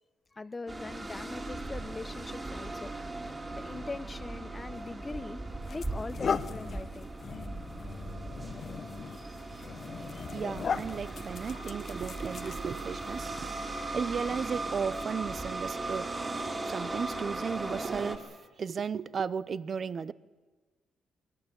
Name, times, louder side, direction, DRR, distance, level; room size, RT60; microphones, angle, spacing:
voice 1, 0.3-2.9 3.5-5.4 5.7-7.1, left 3 dB, 25° left, 13 dB, 1.1 m, -41 dB
sound 1, 0.7-18.2, right 2 dB, 20° right, 2.9 m, -38 dB
sound 2, 4.9-5.0 5.6-13.0, left 6 dB, 50° left, 1.0 m, -38 dB
voice 2, 10.3-16.1 16.5-18.3 18.6-20.1, right 6 dB, 45° right, 18 dB, 0.7 m, -35 dB
22.0 x 19.0 x 9.0 m, 1.3 s
cardioid pair, 90°, 0 cm